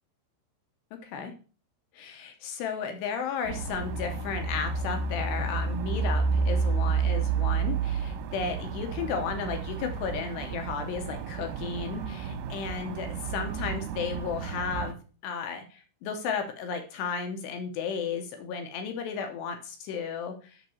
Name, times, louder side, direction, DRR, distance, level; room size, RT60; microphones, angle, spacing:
voice 1, 1.0-1.3 1.9-15.0 15.2-20.6, left 6 dB, 80° left, 5 dB, 2.5 m, -34 dB
sound 1, 3.5-15.0, right 5 dB, 90° right, 3.4 m, -31 dB
7.1 x 6.0 x 6.9 m, 0.38 s
omnidirectional pair, 6.0 m